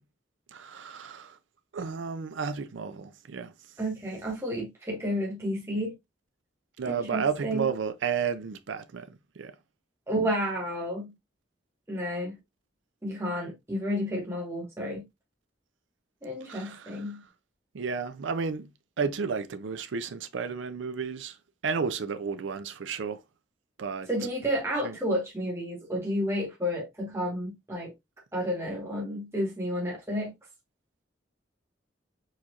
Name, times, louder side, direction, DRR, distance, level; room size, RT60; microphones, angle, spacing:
voice 1, 0.5-1.4 1.7-3.5 6.8-9.5 16.5-17.2 17.7-18.7 19.0-21.4 21.6-23.2 23.8-24.1 24.8-25.0, right 6 dB, 85° right, 0.5 m, -32 dB
voice 2, 3.8-5.9 6.8-7.7 10.1-11.1 11.9-12.4 13.0-15.1 16.2-17.2 24.1-27.9 28.3-30.3, equal, 15° right, 1.3 m, -31 dB
4.8 x 4.2 x 2.4 m
head